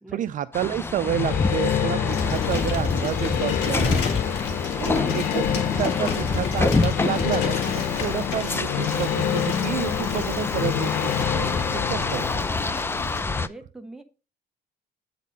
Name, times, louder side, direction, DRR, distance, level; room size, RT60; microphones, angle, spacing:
voice 1, 0.1-4.0 4.8-12.7 13.4-13.5, right 11 dB, 50° right, 12 dB, 0.4 m, -30 dB
sound 1, 0.5-13.5, left 3 dB, 15° left, 0.4 m, -27 dB
sound 2, 1.0-12.4, left 10 dB, 60° left, 0.6 m, -28 dB
Bicycle, 2.1-13.2, left 6 dB, 85° left, 1.9 m, -34 dB
voice 2, 11.9-12.5 13.2-14.0, right 1 dB, 5° right, 5 dB, 1.2 m, -42 dB
8.3 x 4.1 x 5.3 m, 0.32 s
cardioid pair, 110°, 17 cm